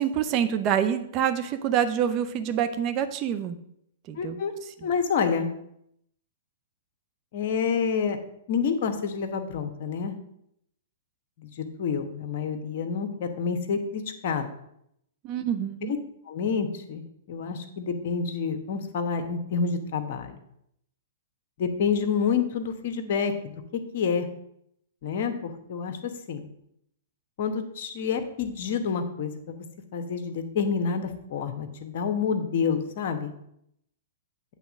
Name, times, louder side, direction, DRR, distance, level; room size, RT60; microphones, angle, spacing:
voice 1, 0.0-3.6 4.1-4.4 15.2-15.9, right 9 dB, 35° right, 9 dB, 0.7 m, -26 dB
voice 2, 4.2-4.5 4.8-5.5 7.3-8.2 8.5-10.2 11.4-14.5 15.8-16.0 16.3-20.4 21.6-23.5 23.9-24.3 25.0-26.5 27.4-29.6 29.9-33.3, left 6 dB, 55° left, 7 dB, 1.1 m, -28 dB
8.2 x 3.7 x 6.3 m, 0.76 s
hypercardioid pair, 115°, 0 cm